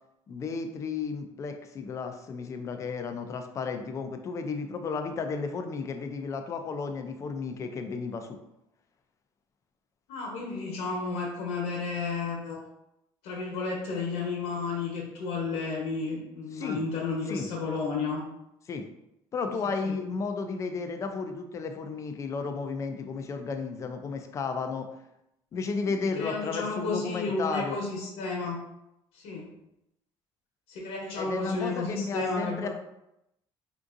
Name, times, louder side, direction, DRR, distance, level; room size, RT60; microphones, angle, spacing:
voice 1, 0.3-8.4 16.5-16.8 17.3-17.5 18.7-18.8 19.3-24.9 25.5-27.8 31.2-32.7, left 4 dB, 30° left, 6 dB, 0.3 m, -33 dB
voice 2, 10.1-12.6 13.2-18.2 19.8-20.0 25.8-28.6 29.1-29.5 30.7-32.7, left 4 dB, 85° left, -2 dB, 0.9 m, -32 dB
3.6 x 2.6 x 2.4 m, 0.85 s
cardioid pair, 135°, 10 cm